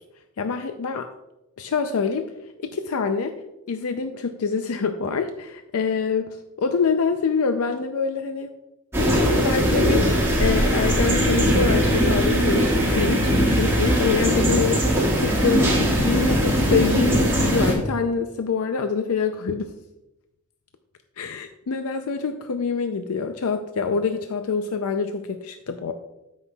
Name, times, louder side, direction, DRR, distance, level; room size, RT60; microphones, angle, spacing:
voice 1, 0.4-1.1 1.6-2.3 2.6-3.3 3.7-8.5 9.4-19.7 21.2-25.9, left 5 dB, 80° left, 7 dB, 0.5 m, -25 dB
sound 1, 8.9-17.7, equal, 10° right, 1.6 m, -20 dB
13.5 x 5.6 x 2.3 m, 0.95 s
head